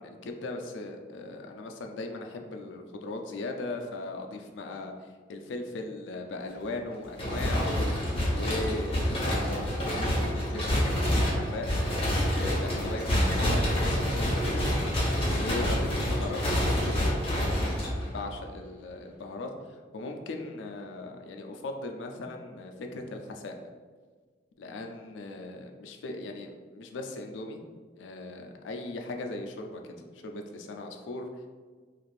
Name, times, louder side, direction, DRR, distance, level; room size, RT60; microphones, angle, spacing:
voice 1, 0.0-7.9 8.3-11.7 12.3-14.7 15.3-17.8 18.1-23.5 24.6-27.6 28.0-31.3, left 2 dB, 80° left, 4 dB, 0.4 m, -38 dB
sound 1, 7.2-18.4, equal, 30° left, 0.7 m, -27 dB
2.5 x 2.4 x 3.2 m, 1.5 s
head